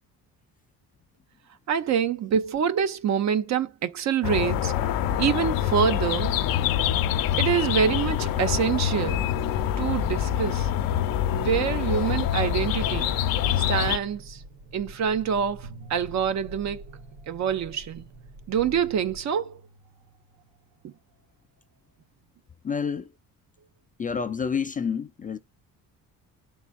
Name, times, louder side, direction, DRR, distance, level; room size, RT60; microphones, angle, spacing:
voice 1, 1.7-4.7 5.2-6.3 7.4-9.3 9.8-10.7 11.3-13.2 13.6-14.4 14.7-17.0 17.3-18.1 18.5-19.6 20.8-20.9, right 7 dB, 50° right, 0.7 m, -26 dB
sound 1, 4.2-14.0, left 10 dB, 75° left, 0.7 m, -25 dB
sound 2, 6.7-19.2, right 2 dB, 85° right, 1.0 m, -46 dB
sound 3, 8.9-9.0 9.2-11.5 12.2-14.6 15.6-18.1 18.6-21.1, right 3 dB, 70° right, 1.3 m, -50 dB
voice 2, 22.6-23.2 24.0-25.4, left 6 dB, 25° left, 0.4 m, -29 dB
11.5 x 3.9 x 2.4 m
cardioid pair, 100°, 35 cm